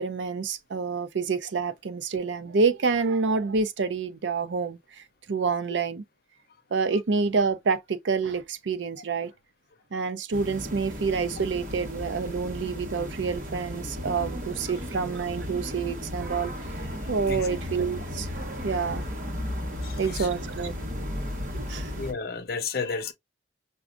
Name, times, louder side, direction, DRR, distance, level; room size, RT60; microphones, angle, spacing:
voice 1, 0.0-4.8 5.3-6.0 6.7-9.3 9.9-16.5 17.1-18.3 18.6-19.0 20.0-20.7 21.5-22.0, right 4 dB, 85° right, 0.5 m, -27 dB
sound 1, 10.3-22.1, left 1 dB, 45° right, 1.3 m, -35 dB
voice 2, 16.9-17.5 19.8-20.3 21.9-23.1, left 5 dB, 55° left, 0.6 m, -33 dB
6.0 x 2.3 x 2.4 m
head